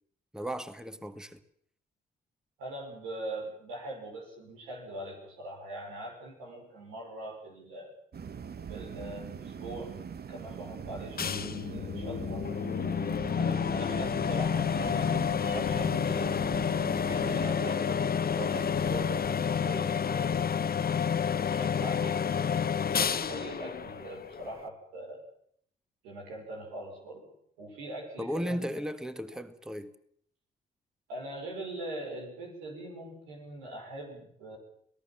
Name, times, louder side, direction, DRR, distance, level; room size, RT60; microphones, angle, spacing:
voice 1, 0.3-1.4 28.2-29.9, equal, 5° right, 1.9 m, -35 dB
voice 2, 2.6-7.9 8.7-9.9 10.3-12.5 13.3-16.5 17.0-20.5 21.5-22.2 22.9-25.2 26.0-28.9 31.1-34.6, right 1 dB, 85° right, 6.1 m, -42 dB
sound 1, 8.1-17.5, right 7 dB, 55° right, 1.5 m, -42 dB
sound 2, 11.2-24.7, left 7 dB, 50° left, 1.4 m, -29 dB
25.5 x 18.0 x 7.5 m
hypercardioid pair, 45°, 20 cm